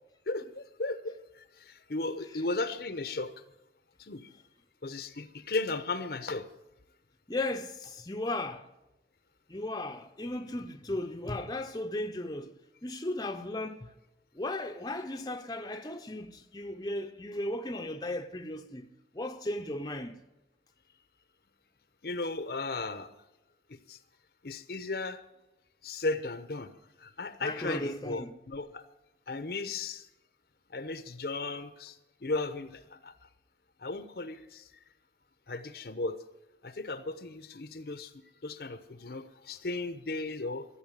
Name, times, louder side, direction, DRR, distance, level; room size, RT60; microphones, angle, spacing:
voice 1, 0.3-3.3 4.0-4.3 4.8-6.5 22.0-23.1 23.7-24.0 24.4-25.2 25.8-28.8 29.3-30.1 30.7-33.1 33.8-34.7 35.5-36.2 36.6-40.7, left 3 dB, 60° left, 0.8 m, -36 dB
voice 2, 7.3-8.7 9.5-12.5 12.8-13.9 14.3-18.9 19.1-20.2 27.4-28.3, left 1 dB, 20° left, 0.8 m, -36 dB
14.0 x 8.1 x 8.2 m
head